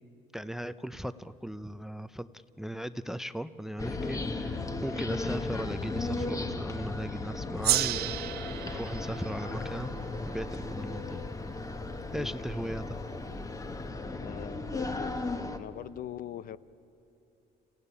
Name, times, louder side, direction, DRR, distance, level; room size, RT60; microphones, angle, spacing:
voice 1, 0.3-2.3 2.6-8.2 8.7-9.9 10.3-11.2 12.1-12.8, equal, ahead, 14 dB, 0.5 m, -37 dB
sound 1, 3.8-15.6, left 3 dB, 20° left, 1.2 m, -35 dB
Gong, 7.6-12.4, right 13 dB, 70° right, 0.9 m, -34 dB
voice 2, 14.2-15.2 15.6-16.6, left 10 dB, 55° left, 16 dB, 0.7 m, -42 dB
27.5 x 15.5 x 9.8 m, 2.7 s
cardioid pair, 110°, 17 cm